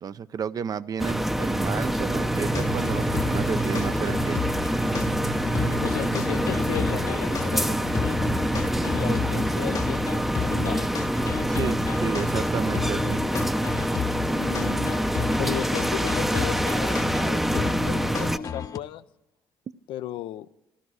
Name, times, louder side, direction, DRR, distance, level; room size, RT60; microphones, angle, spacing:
voice 1, 0.0-4.4 11.5-13.3, right 7 dB, 50° right, 15 dB, 0.6 m, -32 dB
sound 1, 1.0-18.4, right 1 dB, 5° right, 0.6 m, -26 dB
sound 2, 2.3-9.6, right 3 dB, 75° right, 3.5 m, -37 dB
sound 3, 2.5-18.8, left 7 dB, 45° left, 0.8 m, -33 dB
voice 2, 5.8-8.3 8.8-10.9 14.3-15.0 15.4-19.0 19.9-20.5, left 13 dB, 80° left, 13 dB, 0.6 m, -35 dB
14.5 x 12.5 x 6.4 m, 0.93 s
cardioid pair, 85°, 8 cm